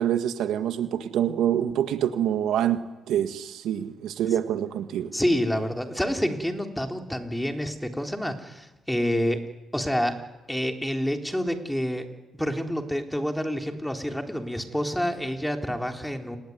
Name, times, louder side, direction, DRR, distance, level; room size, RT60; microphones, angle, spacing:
voice 1, 0.0-2.8 3.1-5.1, right 10 dB, 80° right, 9 dB, 1.8 m, -26 dB
voice 2, 5.1-9.4 9.7-10.1 10.5-12.1 12.4-16.4, equal, 5° left, 4 dB, 3.5 m, -28 dB
29.0 x 20.5 x 9.4 m, 1.1 s
cardioid pair, 90°, 0 cm